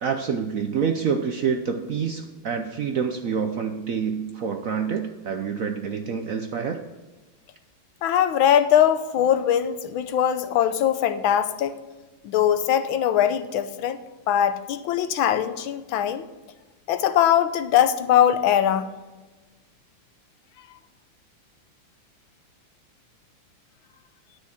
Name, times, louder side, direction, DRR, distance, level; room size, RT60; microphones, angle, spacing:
voice 1, 0.0-6.8, right 6 dB, 65° right, 5 dB, 0.8 m, -27 dB
voice 2, 8.0-11.8 12.2-14.0 14.3-16.2 16.9-18.9, left 10 dB, 85° left, 11 dB, 1.5 m, -21 dB
10.0 x 6.5 x 6.5 m, 1.2 s
omnidirectional pair, 2.1 m